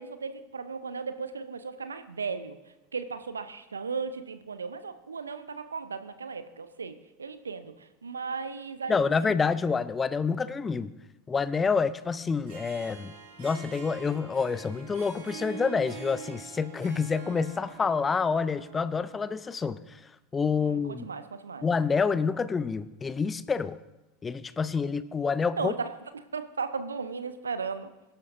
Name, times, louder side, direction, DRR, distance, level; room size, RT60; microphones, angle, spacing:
voice 1, 0.0-2.6 2.9-9.4 20.6-21.7 25.6-27.9, right 5 dB, 80° right, 11 dB, 0.7 m, -36 dB
voice 2, 8.9-10.9 11.3-13.1 13.4-20.0 20.3-21.1 21.6-23.8 24.2-25.7, left 5 dB, 20° left, 16 dB, 0.6 m, -28 dB
Harp, 12.3-19.6, right 7 dB, 60° right, 3.6 m, -45 dB
24.0 x 11.0 x 2.7 m, 1.0 s
figure-of-eight pair, 80°, 0 cm